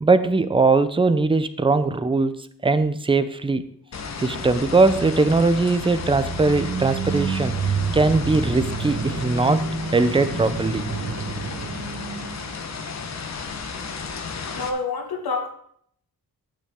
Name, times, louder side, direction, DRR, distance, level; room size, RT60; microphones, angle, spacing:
voice 1, 0.0-3.7 4.2-7.6 7.9-9.6 9.9-10.8, right 3 dB, 15° right, 12 dB, 0.6 m, -20 dB
sound 1, 3.9-14.7, left 5 dB, 45° left, 1.2 m, -33 dB
sound 2, 4.1-12.9, right 5 dB, 40° right, 1.3 m, -30 dB
voice 2, 14.6-15.5, left 4 dB, 80° left, 4 dB, 2.2 m, -27 dB
12.0 x 9.0 x 3.7 m, 0.63 s
wide cardioid pair, 175°, 37 cm